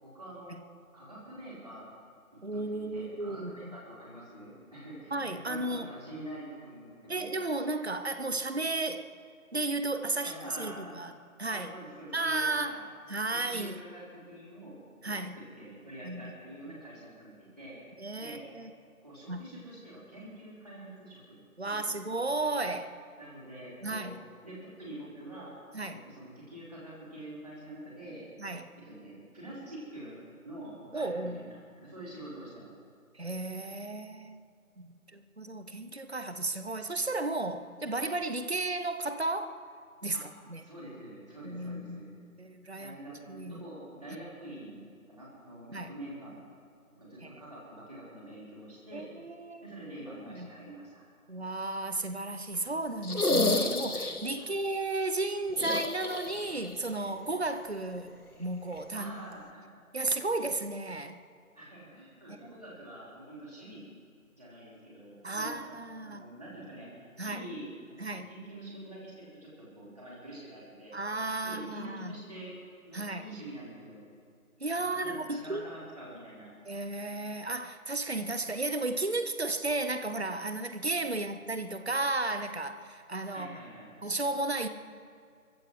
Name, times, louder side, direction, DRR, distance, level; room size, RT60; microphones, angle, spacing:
voice 1, 0.0-0.6 0.9-1.8 2.3-7.3 10.2-10.9 11.5-12.8 13.3-18.4 19.0-22.0 23.2-24.1 24.4-25.5 25.9-28.2 28.8-30.2 30.4-32.7 40.1-40.2 40.6-42.1 42.8-44.8 45.1-46.4 47.0-49.1 49.6-51.1 54.3-54.6 58.9-59.8 61.5-63.8 64.3-65.8 66.0-71.0 71.4-72.5 72.9-74.0 74.7-76.5 83.3-84.1, right 1 dB, 25° right, -7 dB, 4.3 m, -46 dB
voice 2, 2.4-3.8 5.1-5.9 7.1-9.1 9.5-11.1 11.4-11.7 12.1-12.8 13.1-13.8 15.0-15.4 16.0-16.3 18.0-18.7 19.3-19.4 21.6-23.0 23.8-24.2 25.7-26.0 28.4-28.7 30.9-31.4 33.1-34.5 34.8-39.6 40.0-40.6 41.4-43.0 43.3-43.7 45.7-45.9 47.2-47.4 48.9-49.6 50.0-50.5 51.3-59.1 59.9-61.2 62.3-62.6 65.2-66.2 67.2-67.5 68.0-68.3 70.9-72.2 72.9-73.3 74.6-75.7 76.7-83.6 84.0-84.7, right 2 dB, 45° right, 9 dB, 0.7 m, -34 dB
sound 1, 53.0-54.4 55.5-56.7 57.0-57.1 58.7-58.8, left 2 dB, 90° left, 1.5 m, -30 dB
29.0 x 15.5 x 3.2 m, 2.2 s
figure-of-eight pair, 175°, 44 cm